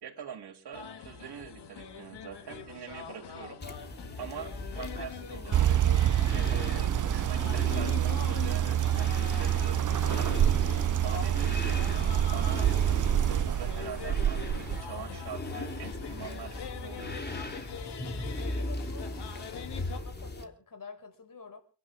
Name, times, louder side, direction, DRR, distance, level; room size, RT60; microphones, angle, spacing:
voice 1, 0.0-3.6 4.2-10.4 11.0-11.8 12.3-17.5, right 8 dB, 70° right, 3.4 m, -44 dB
sound 1, 0.7-20.0, left 7 dB, 75° left, 2.8 m, -43 dB
sound 2, 3.6-20.4, left 2 dB, 25° left, 3.3 m, -39 dB
sound 3, 5.5-14.8, right 11 dB, 50° right, 0.7 m, -27 dB
voice 2, 18.4-21.6, left 5 dB, 50° left, 5.9 m, -49 dB
29.5 x 11.5 x 3.7 m
cardioid pair, 65°, 41 cm